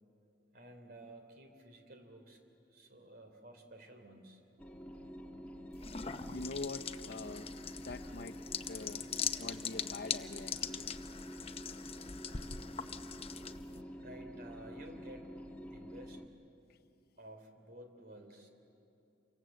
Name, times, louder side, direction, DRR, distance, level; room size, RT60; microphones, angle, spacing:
voice 1, 0.5-2.4 2.7-4.4 14.0-15.3 15.7-16.3 17.2-18.5, right 1 dB, 55° right, 5 dB, 3.3 m, -53 dB
sound 1, 4.6-16.2, equal, 10° left, 1.5 m, -48 dB
sound 2, 5.7-13.8, left 7 dB, 35° left, 0.8 m, -41 dB
voice 2, 6.3-7.5 7.8-9.1 9.4-10.9 12.3-12.5 12.9-13.0, left 2 dB, 60° left, 7 dB, 0.9 m, -45 dB
28.5 x 24.5 x 7.7 m, 2.8 s
head